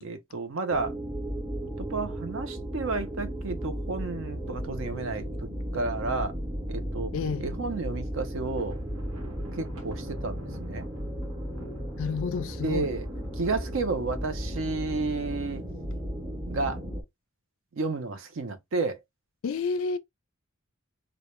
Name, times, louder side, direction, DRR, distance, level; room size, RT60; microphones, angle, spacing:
voice 1, 0.0-1.0 1.8-6.3 6.7-7.1 7.4-8.8 9.5-10.9 12.6-13.1 13.3-15.6 16.5-16.8 17.7-19.0, right 3 dB, 60° right, 0.5 m, -31 dB
sound 1, 0.7-17.0, equal, 15° right, 0.6 m, -35 dB
voice 2, 7.1-7.5 12.0-12.9 19.4-20.0, left 5 dB, 65° left, 0.3 m, -30 dB
Thunder, 8.4-15.6, right 1 dB, 75° right, 0.8 m, -51 dB
2.1 x 2.1 x 2.9 m
head